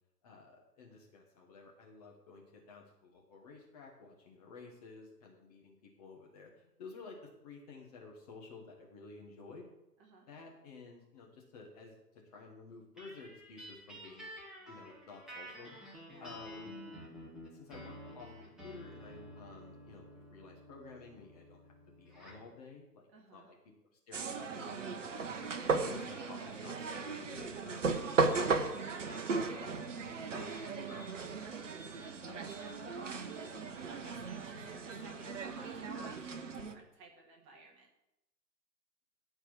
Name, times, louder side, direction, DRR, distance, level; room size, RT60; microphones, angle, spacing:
voice 1, 0.2-6.5 6.8-9.7 10.3-11.9 12.3-14.3 14.7-15.7 16.2-16.7 17.5-18.3 18.6-23.0 23.3-23.6 24.1-25.2 25.7-28.7 29.1-31.4 31.8-32.7, left 4 dB, 25° left, 0 dB, 1.4 m, -53 dB
sound 1, 13.0-22.5, equal, ahead, 1.2 m, -51 dB
voice 2, 23.1-23.5 25.5-25.8 26.4-26.5 33.1-37.9, right 2 dB, 20° right, 0 dB, 1.7 m, -56 dB
sound 2, 24.1-36.7, right 4 dB, 50° right, 1.0 m, -36 dB
13.0 x 4.7 x 6.2 m, 0.88 s
figure-of-eight pair, 130°, 50 cm